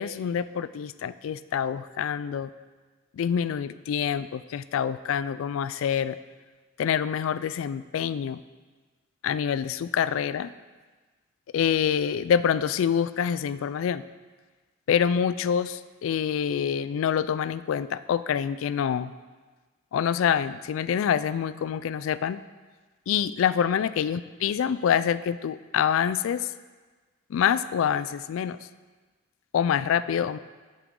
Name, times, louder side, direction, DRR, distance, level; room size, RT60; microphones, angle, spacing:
voice 1, 0.0-2.5 3.1-6.2 6.8-8.4 9.2-10.5 11.5-14.0 14.9-19.1 19.9-22.4 23.1-26.5 27.3-28.6 29.5-30.4, left 8 dB, 90° left, 16 dB, 0.3 m, -26 dB
8.4 x 7.0 x 3.7 m, 1.3 s
head